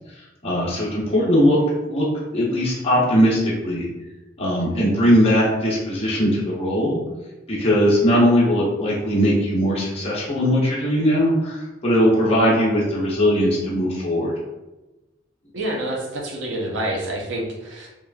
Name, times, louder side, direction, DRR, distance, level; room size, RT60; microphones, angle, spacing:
voice 1, 0.4-1.6 1.9-2.1 2.3-3.9 4.4-7.0 7.5-14.3, equal, 35° left, -5 dB, 0.7 m, -19 dB
voice 2, 15.5-17.9, right 1 dB, 80° right, -1 dB, 0.5 m, -27 dB
3.0 x 2.4 x 2.2 m, 1.0 s
head